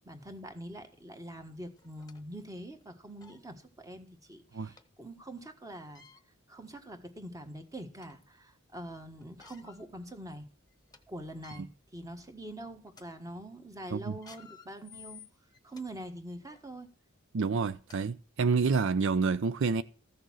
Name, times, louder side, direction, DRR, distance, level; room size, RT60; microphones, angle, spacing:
voice 1, 0.0-6.0 6.5-10.4 11.1-15.2 15.6-16.9, right 1 dB, 15° right, 1.5 m, -44 dB
sound 1, 1.0-1.1 1.8-2.2 2.8-2.9 3.2-3.4 4.8-4.9 5.8-6.2 7.0-7.1 7.6-8.3 9.2-9.8 10.3-10.4 10.7-11.0 11.3-11.6 12.3-12.5 12.9-13.0 14.1-15.8 16.5-16.7 17.5-17.6 17.9-18.0 18.6-18.7, left 6 dB, 20° left, 1.0 m, -54 dB
voice 2, 17.3-19.8, right 4 dB, 65° right, 0.5 m, -28 dB
14.5 x 6.6 x 6.2 m
head